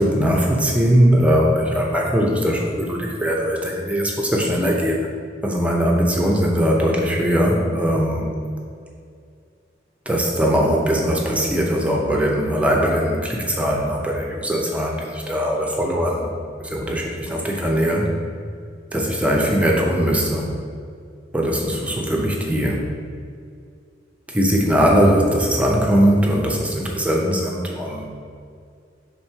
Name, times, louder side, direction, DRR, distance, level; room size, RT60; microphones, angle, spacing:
voice 1, 0.0-5.1 5.4-8.3 10.1-16.3 16.6-18.1 18.9-20.5 21.3-22.8 24.3-28.1, equal, 5° right, -1 dB, 0.6 m, -20 dB
6.1 x 3.7 x 4.5 m, 2.3 s
head